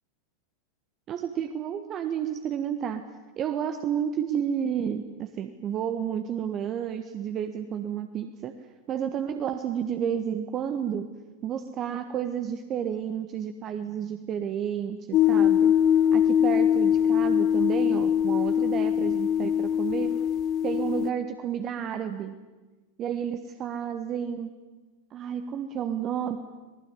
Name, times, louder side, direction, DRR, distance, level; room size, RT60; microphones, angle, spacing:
voice 1, 1.1-3.0 3.4-8.5 8.9-11.1 11.4-15.7 16.1-20.1 20.6-22.3 23.0-24.6 25.1-26.4, right 8 dB, 30° right, 8 dB, 1.5 m, -31 dB
sound 1, 15.1-21.1, left 9 dB, 35° left, 0.8 m, -22 dB
26.0 x 19.5 x 9.8 m, 1.2 s
figure-of-eight pair, 90°, 0 cm